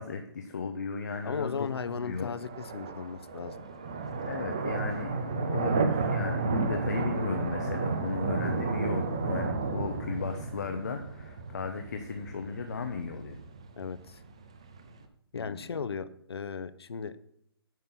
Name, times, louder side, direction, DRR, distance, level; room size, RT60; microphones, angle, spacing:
voice 1, 0.0-2.3 4.3-13.4 15.3-15.7, left 5 dB, 45° left, 5 dB, 0.9 m, -35 dB
sound 1, 1.1-15.0, right 4 dB, 15° right, 0.4 m, -33 dB
voice 2, 1.2-3.6 13.8-14.2 15.3-17.1, left 6 dB, 75° left, 13 dB, 0.9 m, -36 dB
9.4 x 6.1 x 7.5 m, 0.74 s
hypercardioid pair, 180°, 13 cm